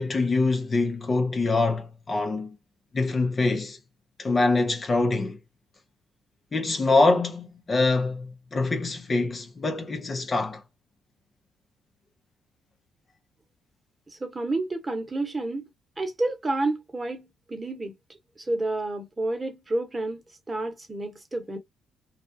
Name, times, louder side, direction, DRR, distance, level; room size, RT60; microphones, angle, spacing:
voice 1, 0.0-2.5 2.9-3.8 4.2-5.4 6.5-10.6, left 3 dB, 35° left, 0.7 m, -24 dB
voice 2, 14.1-15.7 16.0-17.9 18.4-21.6, right 2 dB, 25° right, 1.1 m, -30 dB
2.4 x 2.3 x 2.5 m
supercardioid pair, 75°, 0 cm